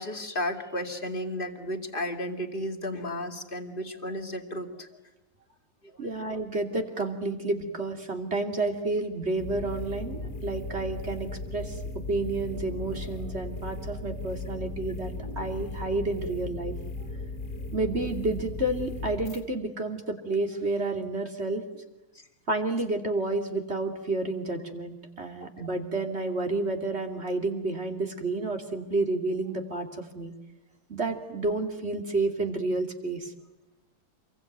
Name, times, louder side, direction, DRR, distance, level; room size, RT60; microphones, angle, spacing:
voice 1, 0.0-4.9 5.8-6.1 22.1-22.3 25.4-25.7, left 1 dB, 25° left, 5 dB, 2.6 m, -34 dB
voice 2, 6.0-11.8 12.1-16.7 17.7-21.6 22.5-30.3 30.9-33.3, right 2 dB, 30° right, 5 dB, 3.0 m, -30 dB
sound 1, 9.4-19.4, left 2 dB, 55° left, 3.1 m, -37 dB
28.0 x 23.0 x 9.4 m, 1.0 s
omnidirectional pair, 2.1 m